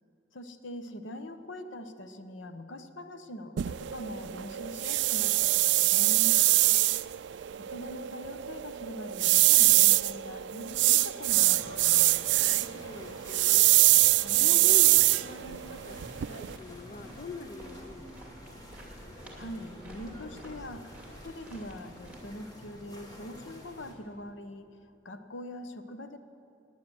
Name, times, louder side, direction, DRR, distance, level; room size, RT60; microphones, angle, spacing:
voice 1, 0.3-6.4 7.3-12.1 14.2-14.7 19.4-24.8 25.0-26.2, left 1 dB, 80° left, 9 dB, 0.9 m, -43 dB
sound 1, 3.6-16.6, right 18 dB, 65° right, 0.3 m, -24 dB
voice 2, 6.3-7.1 12.4-14.1 14.4-18.7, left 3 dB, 45° left, 8 dB, 0.6 m, -45 dB
sound 2, 11.2-23.9, left 1 dB, 20° left, 1.9 m, -49 dB
sound 3, 16.1-22.3, equal, 5° right, 2.4 m, -50 dB
18.5 x 9.3 x 7.7 m, 2.8 s
head